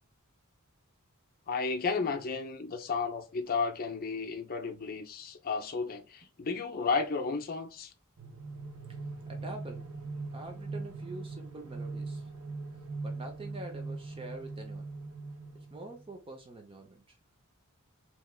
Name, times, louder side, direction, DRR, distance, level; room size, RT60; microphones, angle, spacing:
voice 1, 1.5-7.9, left 4 dB, 45° left, 0.5 m, -33 dB
sound 1, 8.2-16.1, right 3 dB, 70° right, 0.6 m, -41 dB
voice 2, 9.3-9.9 10.3-12.3 13.0-14.8 15.5-17.2, right 2 dB, 25° right, 0.5 m, -45 dB
3.3 x 2.9 x 2.2 m
head